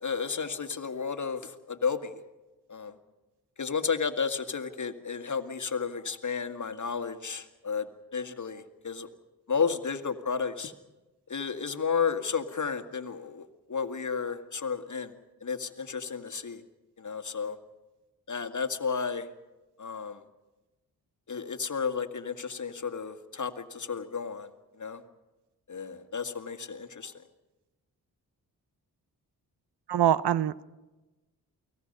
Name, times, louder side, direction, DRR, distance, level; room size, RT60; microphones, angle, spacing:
voice 1, 0.0-2.2 2.7-3.0 3.6-9.1 9.5-10.7 11.3-15.1 15.4-16.6 17.0-17.6 18.3-19.3 19.8-20.2 21.3-25.0 25.7-27.2, left 5 dB, 45° left, 7 dB, 1.9 m, -32 dB
voice 2, 29.9-30.6, right 11 dB, 75° right, 18 dB, 0.8 m, -24 dB
29.0 x 19.5 x 5.5 m, 1.1 s
supercardioid pair, 45°, 41 cm